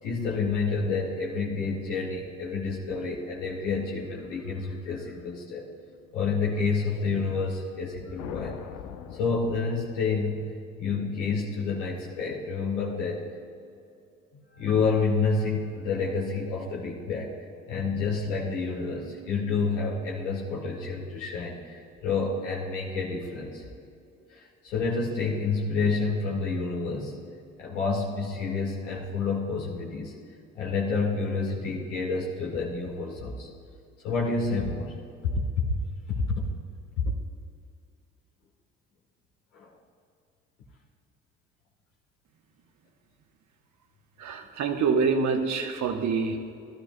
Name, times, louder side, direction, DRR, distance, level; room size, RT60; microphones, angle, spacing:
voice 1, 0.0-5.7 6.1-8.6 9.1-10.4 10.8-13.3 14.3-17.3 17.7-23.7 24.3-27.2 27.6-30.1 30.5-33.5 34.0-35.0 35.2-35.7 36.1-36.5 39.5-39.7, left 4 dB, 80° left, -4 dB, 1.9 m, -29 dB
sound 1, 7.8-10.3, left 8 dB, 60° left, 0.8 m, -42 dB
voice 2, 44.2-46.4, right 5 dB, 50° right, 5 dB, 1.3 m, -26 dB
18.5 x 12.5 x 2.3 m, 2.4 s
hypercardioid pair, 55°, 36 cm